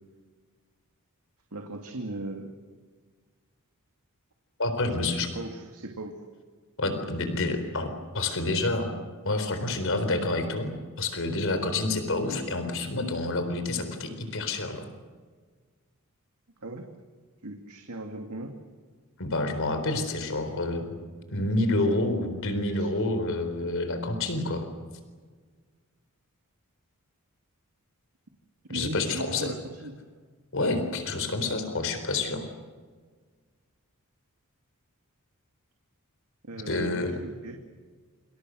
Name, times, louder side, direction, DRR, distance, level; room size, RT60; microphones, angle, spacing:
voice 1, 1.5-2.5 5.3-6.1 16.6-16.8 17.4-18.5 22.8-22.9 28.7-29.6 29.8-29.9 36.4-37.6, right 2 dB, 85° right, 3 dB, 2.4 m, -38 dB
voice 2, 4.6-5.3 6.8-8.9 9.2-14.9 19.2-21.0 21.3-24.7 28.7-29.5 30.5-32.5 36.7-37.2, left 2 dB, 60° left, 8 dB, 4.0 m, -28 dB
27.5 x 27.5 x 6.4 m, 1.5 s
head